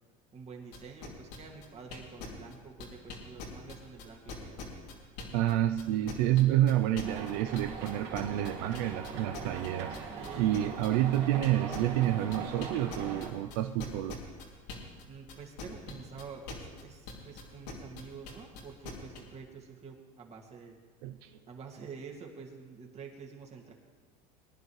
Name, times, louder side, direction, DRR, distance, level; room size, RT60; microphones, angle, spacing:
voice 1, 0.3-4.8 10.2-10.8 15.0-20.8 21.5-23.7, right 5 dB, 30° right, 0 dB, 2.2 m, -48 dB
sound 1, 0.7-5.5 5.8-15.0 15.3-19.2, left 4 dB, 90° left, 2.8 m, -43 dB
voice 2, 5.3-10.0 10.4-14.2 21.0-21.3, right 13 dB, 75° right, 7 dB, 0.5 m, -29 dB
sound 2, 7.0-13.3, right 5 dB, 60° right, 3.1 m, -41 dB
21.5 x 10.5 x 3.2 m, 1.5 s
supercardioid pair, 120°, 20 cm